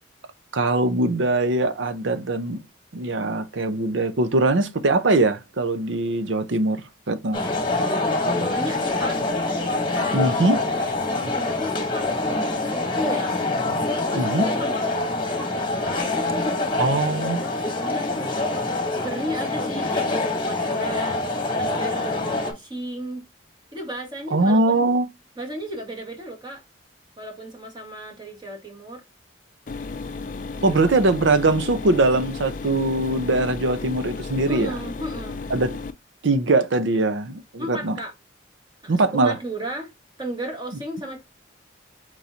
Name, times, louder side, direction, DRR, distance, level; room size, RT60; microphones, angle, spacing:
voice 1, 0.5-2.6 2.9-6.8 7.1-7.4 10.1-10.6 14.1-14.5 16.8-17.4 24.3-25.1 30.6-34.7 35.5-35.8 36.2-38.0 38.9-39.3, right 2 dB, 70° right, 0.7 m, -21 dB
sound 1, 7.3-22.5, left 2 dB, 25° left, 1.2 m, -25 dB
voice 2, 8.1-9.2 9.9-13.4 14.0-21.2 21.6-22.1 22.4-23.3 23.7-24.9 25.4-26.6 27.2-29.0 30.6-30.8 34.5-35.4 37.6-38.1 38.8-39.9 40.2-41.2, right 1 dB, 20° right, 1.6 m, -35 dB
sound 2, 29.7-35.9, left 4 dB, 40° left, 0.4 m, -33 dB
4.7 x 4.0 x 2.8 m
head